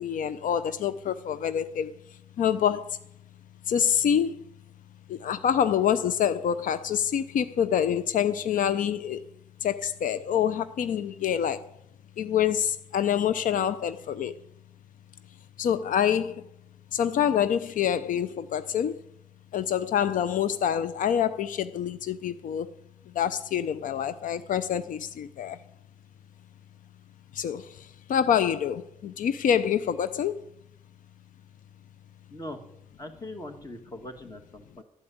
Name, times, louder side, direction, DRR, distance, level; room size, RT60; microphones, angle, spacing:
voice 1, 0.0-1.9 2.4-3.0 3.7-4.4 5.1-9.2 9.6-11.7 12.2-14.3 15.6-16.4 16.9-19.0 19.5-22.7 23.2-25.6 27.4-27.6 28.1-30.4, left 9 dB, 85° left, 0.5 m, -26 dB
voice 2, 32.3-32.6 33.0-34.8, left 1 dB, 25° left, 1.9 m, -41 dB
12.0 x 8.6 x 8.5 m
wide cardioid pair, 130°, 13 cm